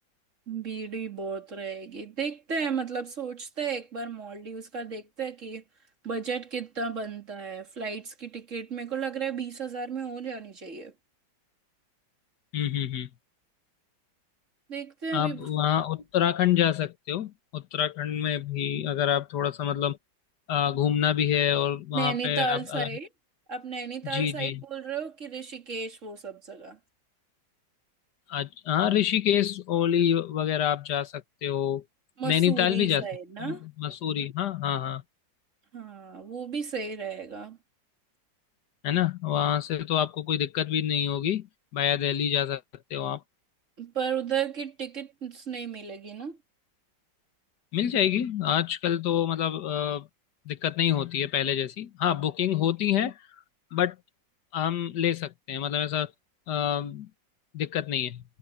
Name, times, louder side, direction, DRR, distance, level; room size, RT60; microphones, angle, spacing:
voice 1, 0.5-5.6 6.0-10.9 14.7-15.5 21.9-23.1 23.5-26.8 32.2-33.6 35.7-37.6 43.8-46.4, right 5 dB, 40° right, 2.7 m, -34 dB
voice 2, 12.5-13.1 15.1-20.0 20.5-22.9 24.0-24.6 28.3-31.8 32.2-33.1 33.4-35.0 38.8-41.5 41.7-42.6 42.9-43.2 47.7-50.1 50.5-53.1 53.7-54.0 54.5-56.1 56.5-57.1 57.5-58.2, left 10 dB, 65° left, 1.8 m, -27 dB
omnidirectional pair, 2.0 m